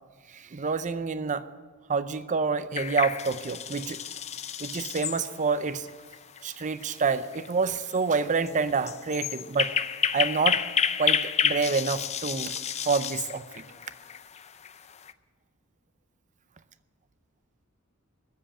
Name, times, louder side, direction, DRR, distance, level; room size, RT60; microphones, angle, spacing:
voice 1, 0.3-1.5 1.9-4.0 4.6-5.9 6.4-9.8 10.1-10.6 11.0-12.5 12.8-13.6, right 5 dB, 35° right, 13 dB, 0.5 m, -28 dB
sound 1, 2.8-15.1, left 8 dB, 30° left, 0.5 m, -31 dB
14.0 x 7.5 x 8.8 m, 1.5 s
head